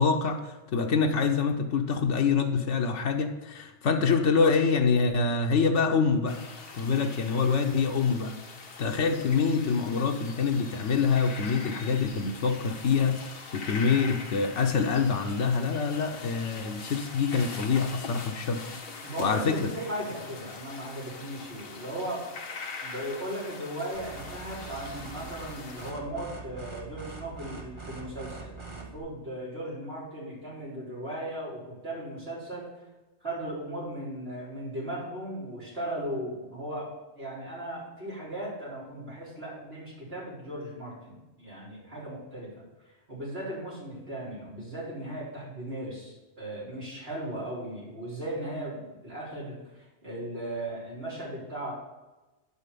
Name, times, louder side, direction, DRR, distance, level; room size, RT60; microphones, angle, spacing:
voice 1, 0.0-6.4 6.7-8.4 8.8-18.6 19.0-19.7, left 5 dB, 90° left, 4 dB, 1.2 m, -26 dB
sound 1, 6.3-25.9, left 4 dB, 55° left, 1.2 m, -43 dB
voice 2, 19.0-22.2 22.8-32.7 33.2-36.9 37.1-42.5 43.1-49.6 50.0-51.7, right 1 dB, 60° right, -5 dB, 4.1 m, -37 dB
sound 2, 23.9-29.0, right 4 dB, 25° right, 1.4 m, -43 dB
9.9 x 5.5 x 6.8 m, 1.1 s
omnidirectional pair, 1.2 m